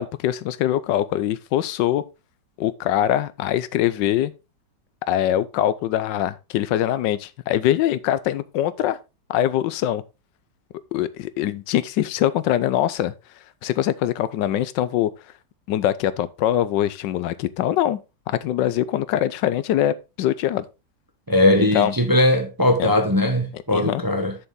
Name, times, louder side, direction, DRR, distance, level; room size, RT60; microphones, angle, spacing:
voice 1, 0.0-2.0 2.6-4.3 5.1-9.0 9.3-10.0 10.9-13.1 13.6-15.1 15.7-18.0 18.3-20.6 21.6-21.9 22.8-22.9 23.7-24.0, left 12 dB, 85° left, 1.3 m, -23 dB
voice 2, 21.3-24.4, left 1 dB, 15° right, 0.8 m, -19 dB
6.8 x 6.8 x 3.7 m
omnidirectional pair, 1.9 m